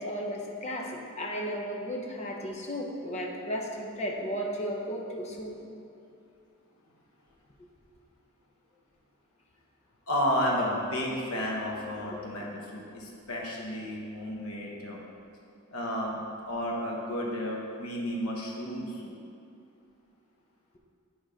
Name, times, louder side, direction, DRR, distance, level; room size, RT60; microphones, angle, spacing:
voice 1, 0.0-5.5, equal, 30° left, 0 dB, 0.7 m, -34 dB
voice 2, 10.1-15.0 15.7-16.2 16.5-19.1, equal, 85° left, -2 dB, 1.2 m, -32 dB
8.8 x 3.0 x 5.0 m, 2.5 s
head